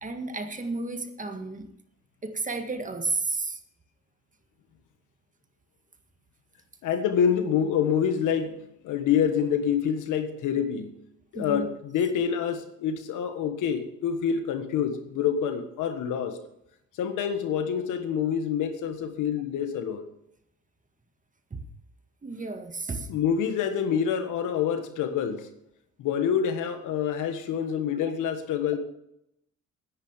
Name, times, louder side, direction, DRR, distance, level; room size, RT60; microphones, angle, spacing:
voice 1, 0.0-1.7 2.2-3.6 11.3-11.7 21.5-21.6 22.2-23.1 28.0-28.1, right 3 dB, 25° right, 7 dB, 1.8 m, -32 dB
voice 2, 6.8-10.9 11.3-16.4 17.0-20.0 23.1-25.5 26.0-28.8, left 8 dB, 85° left, 8 dB, 1.6 m, -27 dB
9.9 x 9.7 x 7.4 m, 0.80 s
cardioid pair, 90°, 30 cm